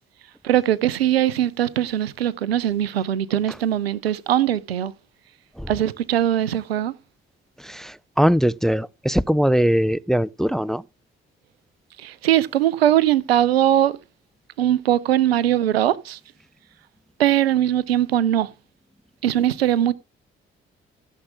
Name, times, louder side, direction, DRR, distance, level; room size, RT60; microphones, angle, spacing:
voice 1, 0.4-4.9 5.7-6.9 12.0-14.0 14.6-16.2 17.2-18.5 19.2-19.9, right 11 dB, 85° right, 0.6 m, -20 dB
voice 2, 7.6-10.8, equal, ahead, 0.5 m, -21 dB
15.5 x 7.2 x 3.6 m
figure-of-eight pair, 40°, 29 cm